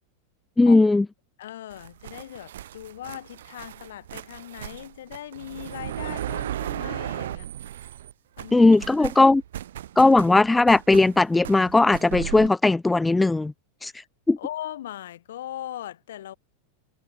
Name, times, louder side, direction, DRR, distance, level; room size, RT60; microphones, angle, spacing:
voice 1, 0.6-1.0 8.5-9.4 10.0-13.5 13.8-13.9 14.3-14.4, left 2 dB, 5° left, 0.6 m, -18 dB
voice 2, 1.4-7.5 8.4-8.6 9.0-9.1 14.4-16.3, left 12 dB, 85° left, 4.0 m, -39 dB
sound 1, 1.7-8.1 8.4-12.5, right 12 dB, 90° right, 5.7 m, -36 dB
supercardioid pair, 155°, 0 cm